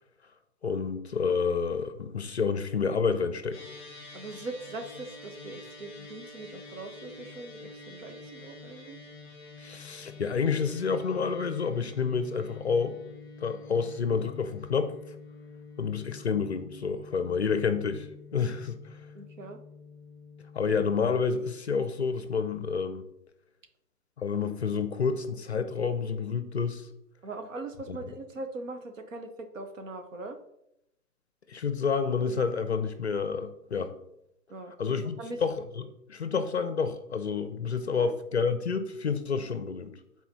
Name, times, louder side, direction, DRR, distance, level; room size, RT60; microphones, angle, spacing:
voice 1, 0.6-3.7 9.6-13.0 13.4-14.9 15.8-18.1 18.3-19.0 20.5-23.1 24.2-26.9 27.9-28.0 31.5-33.9 34.8-40.0, left 5 dB, 45° left, 10 dB, 0.6 m, -29 dB
sound 1, 3.5-21.0, left 3 dB, 10° left, 2.1 m, -47 dB
voice 2, 4.1-9.0 19.1-19.6 27.2-29.3 29.5-30.4 34.5-35.4 38.0-38.2, right 2 dB, 50° right, 7 dB, 1.1 m, -41 dB
8.4 x 4.3 x 4.1 m, 0.81 s
figure-of-eight pair, 145°, 48 cm